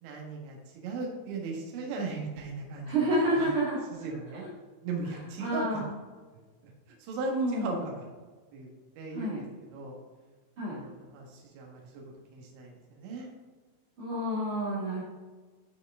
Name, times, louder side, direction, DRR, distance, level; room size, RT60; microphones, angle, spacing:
voice 1, 0.0-3.1 3.3-3.5 3.9-4.4 4.8-5.8 6.6-6.7 7.0-8.0 8.5-8.7 9.0-9.4 9.7-9.9 10.6-12.0 12.3-13.3, right 3 dB, 75° right, -1 dB, 3.7 m, -37 dB
voice 2, 2.8-4.0 5.4-5.9 7.3-7.8 9.1-9.4 10.6-10.8 14.0-15.0, right 1 dB, 50° right, -9 dB, 1.5 m, -29 dB
13.0 x 4.6 x 3.6 m, 1.4 s
omnidirectional pair, 5.6 m